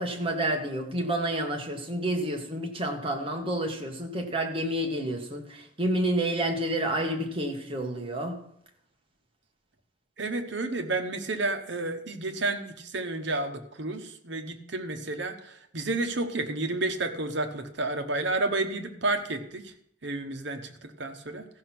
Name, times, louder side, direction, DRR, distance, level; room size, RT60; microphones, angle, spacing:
voice 1, 0.0-8.4, right 1 dB, 30° right, 3 dB, 1.5 m, -29 dB
voice 2, 10.2-19.7 20.0-21.5, right 2 dB, 65° right, 7 dB, 1.2 m, -31 dB
14.5 x 5.7 x 6.0 m, 0.73 s
head